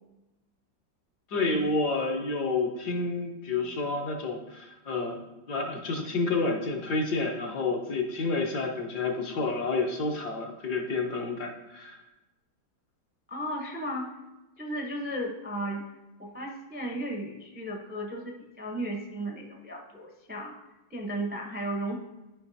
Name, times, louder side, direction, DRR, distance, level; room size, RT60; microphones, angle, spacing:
voice 1, 1.3-5.2 5.5-12.0, left 3 dB, 70° left, 1 dB, 1.6 m, -29 dB
voice 2, 13.3-14.1 14.6-15.8 16.2-20.5 20.9-22.0, right 1 dB, 10° right, 1 dB, 0.4 m, -35 dB
12.0 x 5.0 x 2.7 m, 1.0 s
omnidirectional pair, 1.9 m